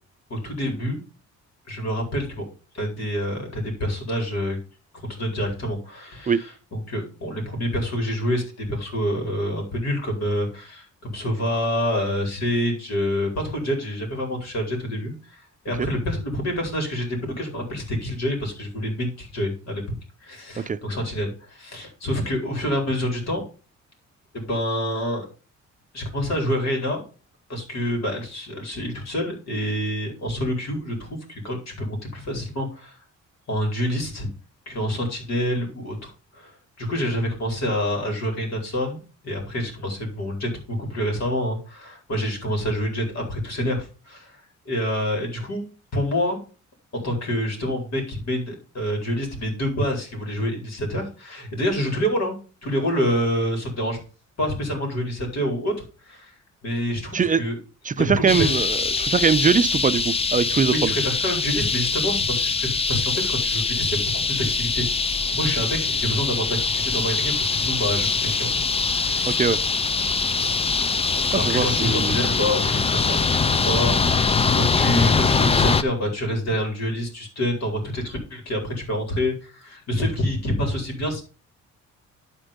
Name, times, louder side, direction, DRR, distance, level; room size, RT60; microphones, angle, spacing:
voice 1, 0.3-1.0 1.7-2.4 2.7-4.6 5.1-19.8 20.2-23.4 24.3-25.3 25.9-27.0 27.5-32.9 33.5-34.3 34.7-39.0 39.2-44.4 44.6-46.4 47.0-54.0 54.4-55.7 56.1-56.3 56.6-57.6 58.0-58.6 60.7-64.9 65.3-68.5 68.9-69.4 71.3-81.2, equal, 60° left, 4.4 m, -27 dB
voice 2, 57.8-60.9 69.3-69.6 71.3-72.2, right 6 dB, 25° right, 0.6 m, -22 dB
sound 1, 58.3-75.8, left 4 dB, 20° left, 0.5 m, -23 dB
11.5 x 4.5 x 5.2 m
cardioid pair, 90°, 30 cm